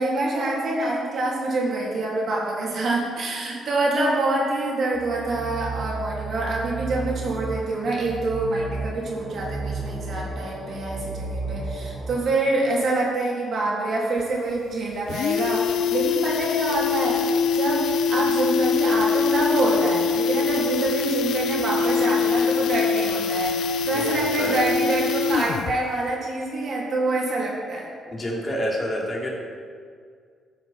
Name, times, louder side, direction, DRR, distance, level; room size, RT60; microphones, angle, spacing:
voice 1, 0.0-17.2 17.5-27.9, right 2 dB, 60° right, -3 dB, 3.0 m, -26 dB
sound 1, 4.9-12.2, right 3 dB, 40° right, 1.8 m, -33 dB
sound 2, 14.2-14.3 14.6-14.7 14.9-25.8 26.1-26.2, left 6 dB, 75° left, 0.4 m, -23 dB
voice 2, 28.1-29.3, equal, 30° left, -3 dB, 2.7 m, -27 dB
13.0 x 7.6 x 4.3 m, 2.1 s
cardioid pair, 90°, 0 cm